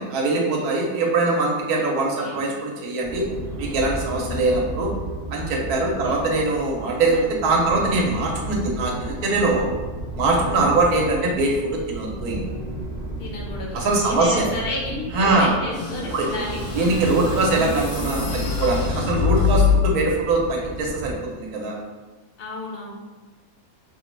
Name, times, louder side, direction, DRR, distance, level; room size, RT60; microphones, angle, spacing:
voice 1, 0.0-3.2 3.6-4.9 5.3-9.7 10.2-12.4 13.7-14.5 15.1-15.5 16.1-16.3 16.7-21.8, right 2 dB, 80° right, -1 dB, 1.1 m, -22 dB
sound 1, 3.0-21.2, right 1 dB, 40° right, 1.0 m, -33 dB
voice 2, 4.0-4.4 5.8-6.5 10.4-10.8 13.2-16.7 22.4-22.9, left 2 dB, 50° left, -3 dB, 0.8 m, -32 dB
sound 2, 15.7-20.1, left 6 dB, 70° left, 1.0 m, -24 dB
2.9 x 2.7 x 3.1 m, 1.2 s
omnidirectional pair, 1.6 m